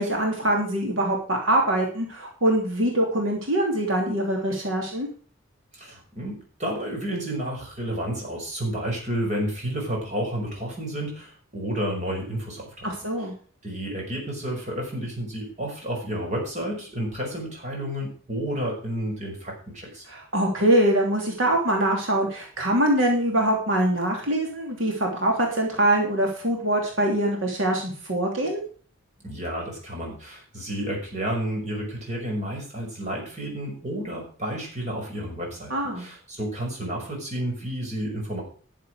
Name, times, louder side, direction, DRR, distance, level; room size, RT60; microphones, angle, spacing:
voice 1, 0.0-5.1 12.8-13.3 20.1-28.6 35.7-36.1, right 1 dB, 70° right, 0 dB, 3.1 m, -23 dB
voice 2, 5.7-12.9 13.2-13.3 13.6-20.0 29.2-38.4, right 1 dB, 35° right, -1 dB, 5.8 m, -31 dB
11.5 x 7.6 x 6.5 m, 0.42 s
head